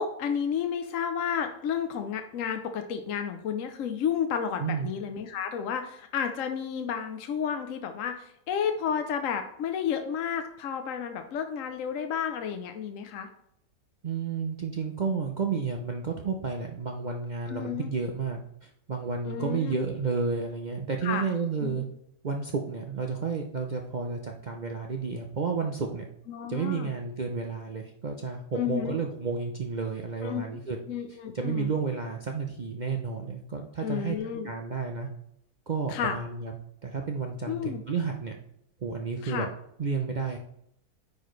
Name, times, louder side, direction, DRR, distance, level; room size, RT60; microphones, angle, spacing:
voice 1, 0.0-13.3 17.5-17.9 19.3-19.8 21.0-21.2 21.6-21.8 26.3-26.9 28.6-29.0 30.2-30.4 30.9-31.7 33.8-34.5 35.9-36.2 37.5-37.8 39.2-39.5, left 7 dB, 65° left, 6 dB, 1.0 m, -31 dB
voice 2, 14.0-21.8 22.2-26.0 26.5-30.8 31.3-34.2 34.4-35.1 35.7-36.5 36.8-38.3 38.8-39.5 39.8-40.4, right 5 dB, 70° right, 3 dB, 0.4 m, -31 dB
9.6 x 4.4 x 3.1 m, 0.74 s
omnidirectional pair, 1.7 m